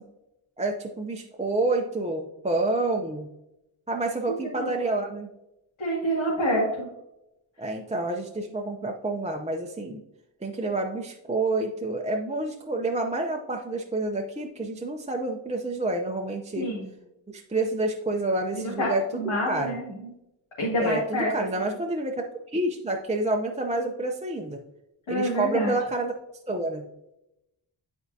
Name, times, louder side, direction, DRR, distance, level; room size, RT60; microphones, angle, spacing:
voice 1, 0.6-3.3 3.9-5.3 7.6-10.0 10.4-16.7 17.3-19.8 20.8-22.1 22.5-24.6 25.1-26.1 26.5-26.9, right 2 dB, 15° right, 1 dB, 0.5 m, -28 dB
voice 2, 4.3-4.7 5.8-6.9 16.6-16.9 18.5-20.1 20.6-21.3 25.1-25.7, equal, 90° left, -7 dB, 2.2 m, -27 dB
10.5 x 4.5 x 2.7 m, 0.87 s
wide cardioid pair, 120°, 47 cm